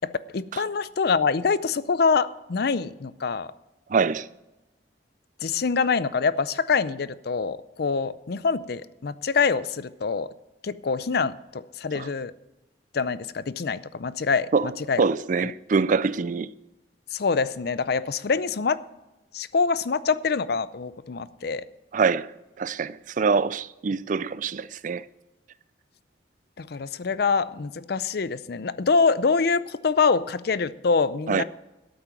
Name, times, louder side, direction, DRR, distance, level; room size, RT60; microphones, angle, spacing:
voice 1, 0.0-3.5 5.4-10.3 10.6-12.3 12.9-15.0 15.4-15.5 17.1-18.8 19.3-21.6 26.6-31.4, left 5 dB, 60° left, 0.5 m, -25 dB
voice 2, 3.9-4.3 11.9-12.1 14.5-14.7 15.0-16.5 21.9-22.3 22.6-25.0 31.3-31.4, right 5 dB, 45° right, 0.4 m, -24 dB
13.0 x 8.8 x 5.9 m
head